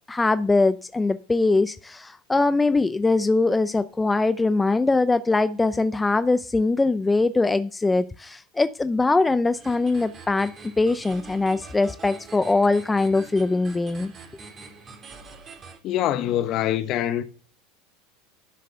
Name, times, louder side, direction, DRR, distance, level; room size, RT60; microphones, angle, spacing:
voice 1, 0.1-10.5 10.8-14.1, left 3 dB, 15° left, 0.6 m, -22 dB
sound 1, 9.5-15.8, right 4 dB, 35° right, 3.4 m, -44 dB
voice 2, 15.8-17.2, left 12 dB, 50° left, 1.3 m, -24 dB
12.0 x 6.6 x 6.6 m
hypercardioid pair, 90°, 0 cm